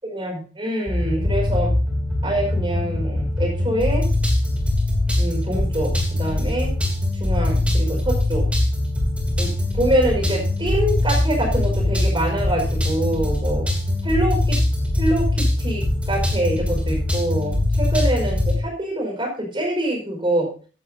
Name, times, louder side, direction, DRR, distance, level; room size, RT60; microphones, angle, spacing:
voice 1, 0.0-1.7 2.2-4.1 5.2-6.7 7.2-8.5 9.4-13.7 14.0-14.6 15.0-20.5, right 1 dB, 25° right, 2 dB, 4.9 m, -25 dB
sound 1, 0.9-18.6, left 1 dB, 5° right, 3.1 m, -22 dB
14.5 x 11.0 x 2.7 m, 0.37 s
head